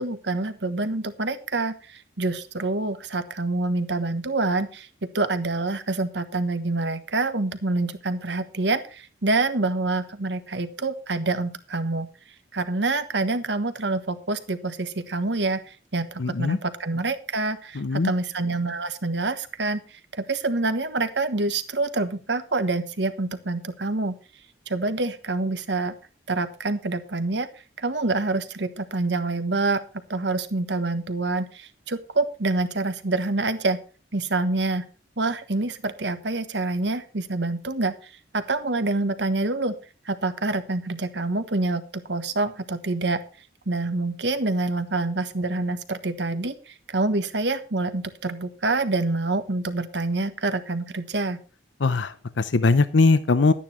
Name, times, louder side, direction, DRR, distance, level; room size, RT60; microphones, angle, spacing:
voice 1, 0.0-12.1 12.5-24.2 24.7-25.9 26.3-27.5 27.8-29.8 30.1-33.8 34.1-34.9 35.2-39.8 40.0-43.2 43.7-51.4, right 2 dB, 70° right, 10 dB, 1.3 m, -26 dB
voice 2, 16.2-16.6 17.8-18.1 51.8-53.5, left 3 dB, 80° left, 13 dB, 0.7 m, -20 dB
12.0 x 9.9 x 4.4 m, 0.35 s
head